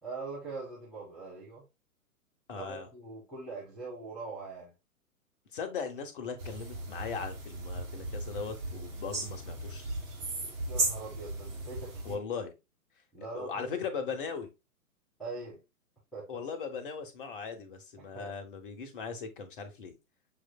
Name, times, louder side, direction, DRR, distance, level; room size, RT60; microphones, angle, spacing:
voice 1, 0.0-1.6 2.5-4.7 10.7-12.2 13.1-13.7 14.0-14.1 15.2-15.6 16.1-16.3 18.0-18.3, right 3 dB, ahead, 1.3 m, -42 dB
voice 2, 2.5-2.9 5.5-9.9 12.0-12.5 13.3-14.5 16.3-19.9, left 5 dB, 35° left, 0.9 m, -38 dB
sound 1, 6.4-12.1, right 2 dB, 65° right, 2.1 m, -36 dB
6.4 x 3.2 x 2.2 m
figure-of-eight pair, 120°, 44 cm